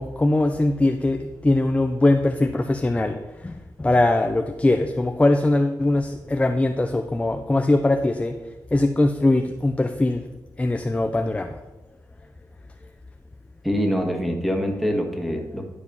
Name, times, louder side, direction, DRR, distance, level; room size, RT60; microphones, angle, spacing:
voice 1, 0.0-3.2 3.4-8.3 8.7-10.2 10.6-11.5, left 2 dB, 20° left, 5 dB, 0.6 m, -21 dB
voice 2, 13.6-15.7, equal, ahead, 2 dB, 1.9 m, -24 dB
11.5 x 4.8 x 5.6 m, 1.1 s
cardioid pair, 75°, 7 cm